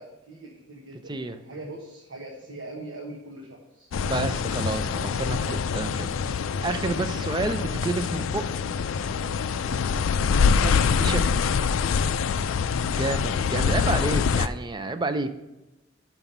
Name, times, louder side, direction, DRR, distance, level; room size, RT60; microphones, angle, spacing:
voice 1, 0.0-3.9 9.5-10.4 12.1-12.8 13.5-13.9, right 2 dB, 80° right, -2 dB, 1.3 m, -43 dB
sound 1, 3.9-14.5, left 6 dB, 90° left, 0.4 m, -25 dB
voice 2, 4.0-8.4 10.6-11.3 12.8-15.3, right 3 dB, 25° right, 10 dB, 0.5 m, -30 dB
6.0 x 5.7 x 6.6 m, 0.98 s
head